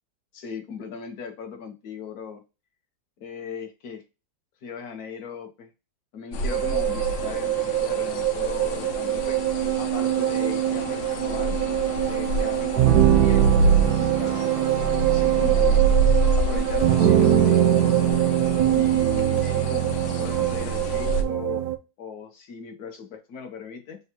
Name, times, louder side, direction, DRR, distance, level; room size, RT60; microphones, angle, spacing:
voice 1, 0.3-2.4 3.2-4.0 4.6-5.7 6.1-11.6 12.1-14.5 15.1-15.9 16.3-17.9 18.7-19.9 20.2-21.6 22.0-24.0, left 5 dB, 60° left, 5 dB, 1.3 m, -38 dB
sound 1, 6.3-21.2, right 3 dB, 80° left, 0.6 m, -26 dB
sound 2, 6.5-21.8, right 12 dB, 75° right, 0.9 m, -23 dB
6.8 x 2.3 x 2.9 m, 0.29 s
omnidirectional pair, 2.0 m